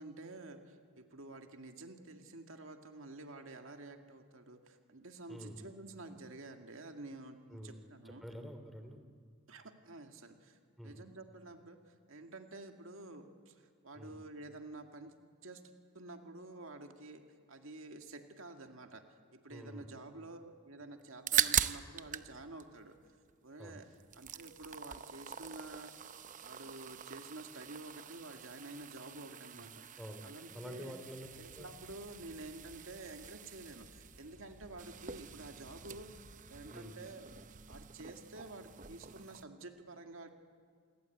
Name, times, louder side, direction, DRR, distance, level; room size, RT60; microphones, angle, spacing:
voice 1, 0.0-8.2 9.5-15.1 15.4-15.6 15.9-17.2 17.5-19.0 19.3-22.9 23.4-23.9 24.1-25.9 26.4-29.8 30.2-30.9 31.4-36.1 36.5-37.3 37.7-40.3, right 2 dB, 70° right, 5 dB, 2.1 m, -50 dB
voice 2, 7.5-9.0 10.8-10.9 13.9-14.1 19.5-19.8 23.6-23.8 29.5-29.7 30.0-30.2 30.5-31.3 31.5-31.7 36.7-37.0, equal, ahead, 6 dB, 2.8 m, -48 dB
sound 1, 21.0-22.3 22.6-23.6 23.9-39.4, right 9 dB, 40° right, 0.8 m, -41 dB
sound 2, 31.2-36.7, equal, 40° left, 3.1 m, -60 dB
28.5 x 21.0 x 9.3 m, 2.1 s
head